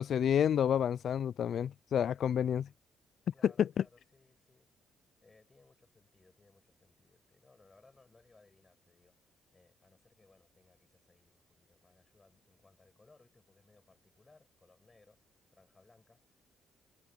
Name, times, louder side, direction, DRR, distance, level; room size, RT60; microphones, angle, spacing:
voice 1, 0.0-2.7 3.6-3.8, left 9 dB, 60° left, 0.4 m, -29 dB
voice 2, 3.3-4.8 5.2-16.5, left 3 dB, 25° left, 7.4 m, -65 dB
cardioid pair, 90°, 0 cm